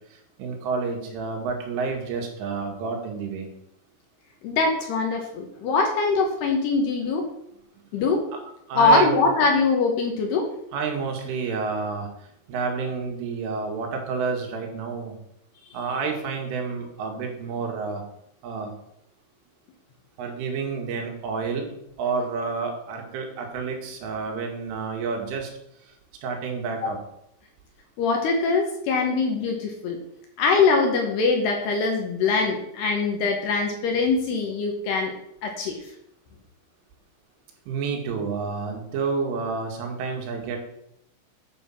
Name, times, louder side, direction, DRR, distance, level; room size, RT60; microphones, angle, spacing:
voice 1, 0.4-3.5 8.3-8.4 8.7-9.2 10.7-12.1 12.5-15.2 15.7-18.0 18.4-18.7 20.2-21.7 22.0-25.5 26.2-27.0 37.7-40.6, right 5 dB, 80° right, 2 dB, 4.2 m, -29 dB
voice 2, 4.4-7.2 7.9-8.2 8.8-10.5 26.8-26.9 28.0-30.0 30.4-35.1 35.4-35.8, left 4 dB, 70° left, 2 dB, 2.8 m, -22 dB
9.6 x 5.6 x 7.1 m, 0.77 s
omnidirectional pair, 5.7 m